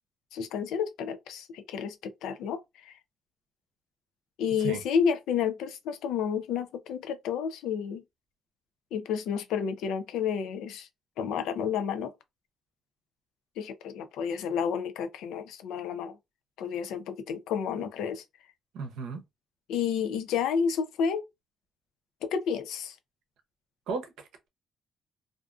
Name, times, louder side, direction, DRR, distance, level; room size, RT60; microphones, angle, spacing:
voice 1, 0.3-3.0 4.4-8.0 8.9-10.9 11.2-12.1 13.6-16.2 16.6-18.2 19.7-21.2 22.2-23.0, left 7 dB, 90° left, 0.4 m, -30 dB
voice 2, 18.7-19.2 23.9-24.5, right 5 dB, 85° right, 0.6 m, -35 dB
2.4 x 2.3 x 2.4 m
cardioid pair, 90°, 0 cm